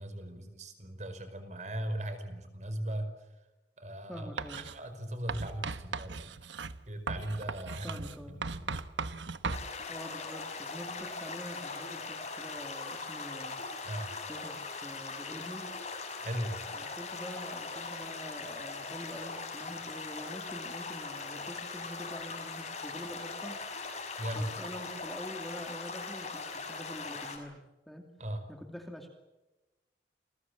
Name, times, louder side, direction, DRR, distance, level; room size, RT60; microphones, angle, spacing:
voice 1, 0.0-3.1 3.8-4.3 4.6-6.3 6.9-8.1 8.4-8.7 13.8-14.1 16.2-16.6 24.2-24.5 28.2-28.4, right 1 dB, 40° right, 9 dB, 5.0 m, -38 dB
voice 2, 4.1-4.7 7.8-8.4 9.9-13.6 14.3-15.7 16.7-23.6 24.3-28.1 28.5-29.1, equal, ahead, 3 dB, 2.7 m, -45 dB
Writing, 4.4-4.8 5.3-9.7, right 4 dB, 85° right, 1.2 m, -38 dB
sound 1, 9.5-27.4, left 4 dB, 40° left, 6.0 m, -40 dB
29.0 x 22.0 x 7.5 m, 1.1 s
head